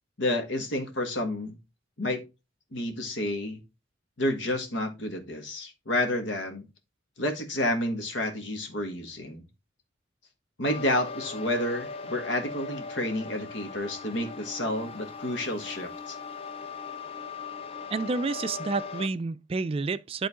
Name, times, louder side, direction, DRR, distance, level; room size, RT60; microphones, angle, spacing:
voice 1, 0.2-1.6 2.0-2.2 2.7-3.6 4.2-6.7 7.2-9.4 10.6-16.2, left 1 dB, 85° left, 1.7 m, -30 dB
sound 1, 10.7-19.1, left 4 dB, 30° left, 0.7 m, -39 dB
voice 2, 17.9-20.3, right 3 dB, 30° right, 0.3 m, -29 dB
11.0 x 3.8 x 3.6 m
head